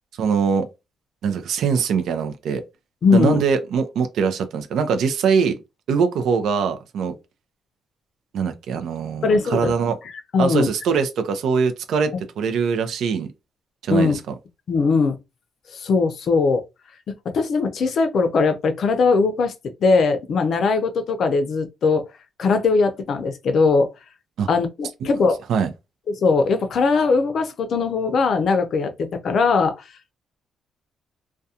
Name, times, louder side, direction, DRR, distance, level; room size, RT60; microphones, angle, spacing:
voice 1, 0.2-0.7 1.2-2.6 3.1-5.6 5.9-7.1 8.3-10.0 10.4-12.1 12.4-13.3 13.8-14.3 24.4-24.5 25.0-25.2 25.5-25.7, right 6 dB, 75° right, 0.4 m, -22 dB
voice 2, 3.0-3.4 9.2-9.7 10.3-10.7 13.9-14.2 14.7-15.2 15.7-16.6 17.3-19.5 19.8-22.1 22.4-23.9 24.5-25.4 26.1-29.7, left 4 dB, 60° left, 0.5 m, -20 dB
2.4 x 2.2 x 2.7 m
cardioid pair, 90°, 0 cm